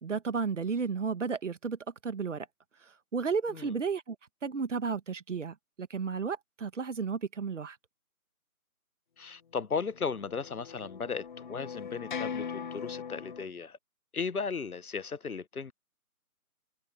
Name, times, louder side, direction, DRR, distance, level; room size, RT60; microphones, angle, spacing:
voice 1, 0.0-2.5 2.8-4.2 4.4-7.8, right 5 dB, 55° right, 1.8 m, -33 dB
voice 2, 9.2-13.8 14.1-15.7, left 5 dB, 75° left, 1.2 m, -36 dB
sound 1, 9.9-13.4, left 6 dB, 35° left, 1.1 m, -40 dB
figure-of-eight pair, 150°, 44 cm